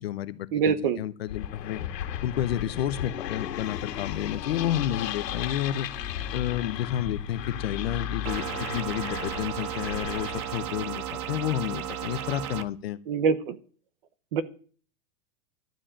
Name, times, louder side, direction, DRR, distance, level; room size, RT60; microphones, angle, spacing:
voice 1, 0.0-1.8 2.2-5.9 6.3-13.0, left 11 dB, 40° left, 0.7 m, -30 dB
voice 2, 0.5-1.0 13.1-13.6 14.3-14.4, right 6 dB, 35° right, 0.8 m, -24 dB
sound 1, 1.3-10.7, left 11 dB, 85° left, 1.9 m, -36 dB
sound 2, 1.5-8.4, left 7 dB, 5° left, 2.2 m, -42 dB
sound 3, 8.3-12.6, right 10 dB, 65° right, 1.1 m, -34 dB
12.5 x 7.5 x 8.7 m
supercardioid pair, 180°, 48 cm